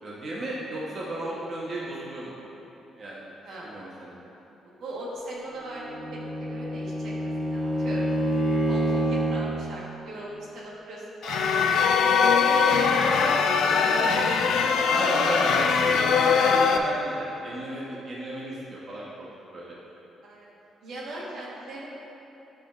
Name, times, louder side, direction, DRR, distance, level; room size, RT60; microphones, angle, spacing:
voice 1, 0.0-2.4 3.0-3.3 3.6-4.2 8.5-8.6 13.3-14.2 14.9-19.3 19.5-19.8, right 1 dB, 45° right, -6 dB, 1.1 m, -34 dB
voice 2, 3.4-3.8 4.6-8.1 8.5-14.0 20.2-20.5 20.8-21.9, right 1 dB, 70° right, -5 dB, 1.3 m, -39 dB
Bowed string instrument, 5.6-9.5, right 1 dB, 10° right, 1.4 m, -27 dB
sound 1, 11.2-16.8, left 6 dB, 75° left, 0.3 m, -21 dB
8.7 x 5.0 x 2.5 m, 3.0 s
cardioid pair, 90°, 0 cm